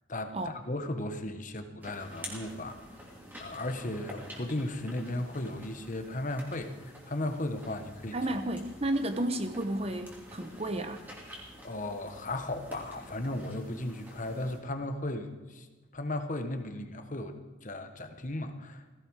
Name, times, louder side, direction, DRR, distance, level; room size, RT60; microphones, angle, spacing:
voice 1, 0.1-2.8 3.4-8.2 11.6-15.7 15.9-18.9, left 1 dB, 40° left, 7 dB, 1.3 m, -36 dB
sound 1, 1.8-14.6, equal, 10° right, 3.0 m, -49 dB
voice 2, 8.1-11.0, right 1 dB, 30° right, 8 dB, 1.0 m, -32 dB
17.5 x 16.5 x 4.9 m, 1.2 s
head